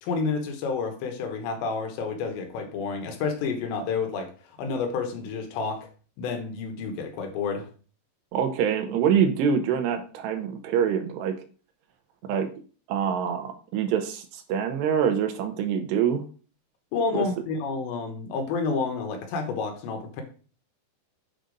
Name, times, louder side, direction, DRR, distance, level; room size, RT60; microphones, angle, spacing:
voice 1, 0.0-4.3 4.6-5.9 6.2-7.7 16.9-20.2, left 4 dB, 85° left, 4 dB, 3.5 m, -29 dB
voice 2, 8.3-11.4 12.3-12.5 12.9-16.2 17.1-17.2, right 8 dB, 80° right, 7 dB, 2.9 m, -25 dB
7.9 x 5.0 x 3.9 m, 0.39 s
omnidirectional pair, 5.0 m